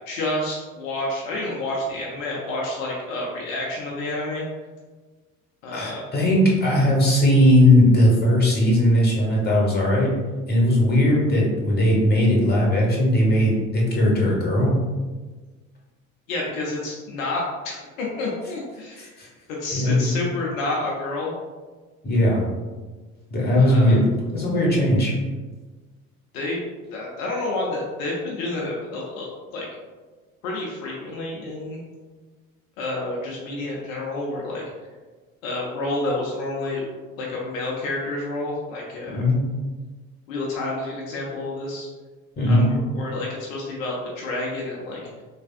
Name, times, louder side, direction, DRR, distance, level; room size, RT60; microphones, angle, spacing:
voice 1, 0.1-4.4 5.6-6.0 16.3-19.0 19.6-21.3 23.6-24.0 26.3-26.6 26.9-29.7 30.4-31.8 32.8-34.6 35.4-36.8 37.2-39.2 40.3-41.9 42.5-45.0, left 2 dB, 70° left, -3 dB, 0.7 m, -29 dB
voice 2, 5.7-10.1 10.5-14.8 19.0-19.3 19.7-20.1 22.0-22.4 23.3-24.0 24.3-25.1 39.1-39.4 42.4-42.7, left 1 dB, 25° left, -3 dB, 1.2 m, -18 dB
3.4 x 2.4 x 2.4 m, 1.3 s
hypercardioid pair, 65°, 42 cm